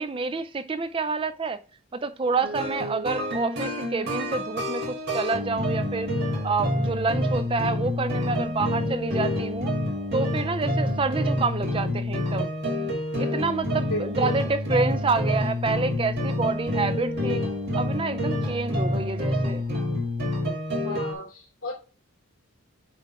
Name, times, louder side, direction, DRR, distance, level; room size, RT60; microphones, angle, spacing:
voice 1, 0.0-1.6 1.9-6.1 6.4-9.7 10.1-12.5 13.2-17.5 17.7-19.6, right 4 dB, 25° right, 0.3 m, -28 dB
sound 1, 2.4-21.1, left 1 dB, 45° right, 2.4 m, -28 dB
voice 2, 13.9-14.4 20.8-21.7, left 1 dB, 65° left, 3.3 m, -33 dB
8.2 x 3.5 x 4.6 m
head